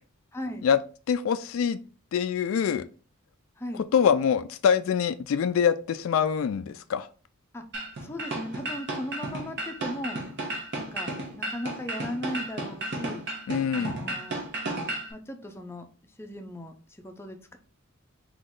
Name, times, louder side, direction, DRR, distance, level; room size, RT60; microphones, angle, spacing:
voice 1, 0.3-0.7 3.6-3.9 7.5-7.6 8.0-10.2 10.8-13.2 13.7-14.4 15.1-15.8 16.2-16.7 17.0-17.6, left 1 dB, 10° left, 4 dB, 0.5 m, -37 dB
voice 2, 1.1-1.8 2.1-2.8 3.9-7.1 13.5-14.0, left 7 dB, 65° left, 11 dB, 0.3 m, -24 dB
sound 1, 7.7-15.1, right 2 dB, 55° right, 1.1 m, -33 dB
3.8 x 3.0 x 3.7 m, 0.38 s
head